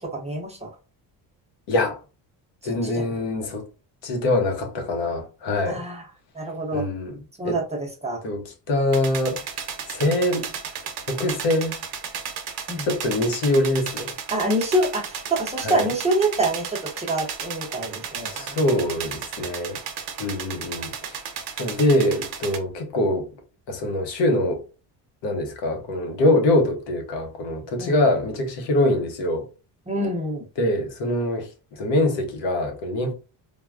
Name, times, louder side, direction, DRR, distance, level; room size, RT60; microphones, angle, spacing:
voice 1, 0.1-0.7 2.6-3.2 5.7-6.0 6.4-6.9 7.4-8.2 12.7-12.9 14.3-18.6 20.8-20.9 27.8-28.0 29.9-30.4, right 1 dB, 15° right, 0.6 m, -26 dB
voice 2, 1.7-2.0 2.6-3.6 4.0-5.8 6.7-7.6 8.2-9.4 9.9-10.5 11.1-11.8 12.8-14.1 15.6-15.9 18.3-19.8 20.2-21.2 21.6-23.3 23.7-24.6 25.2-29.5 30.6-33.1, left 1 dB, 70° left, 0.9 m, -24 dB
sound 1, 8.9-22.6, right 7 dB, 60° right, 0.8 m, -34 dB
3.4 x 2.2 x 2.3 m
cardioid pair, 120°, 44 cm